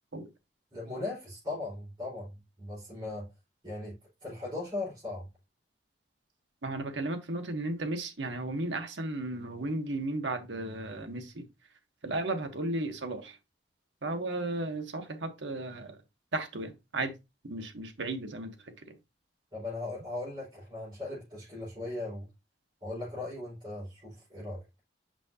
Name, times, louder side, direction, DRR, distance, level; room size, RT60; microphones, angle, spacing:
voice 1, 0.7-3.3 3.6-3.9 4.2-5.3 19.5-22.3 22.8-24.6, left 2 dB, 30° right, 4.4 m, -38 dB
voice 2, 6.6-11.4 12.0-13.4 14.0-16.0 16.3-17.1 17.4-18.5, right 2 dB, 85° right, 1.1 m, -34 dB
5.9 x 5.8 x 2.8 m
head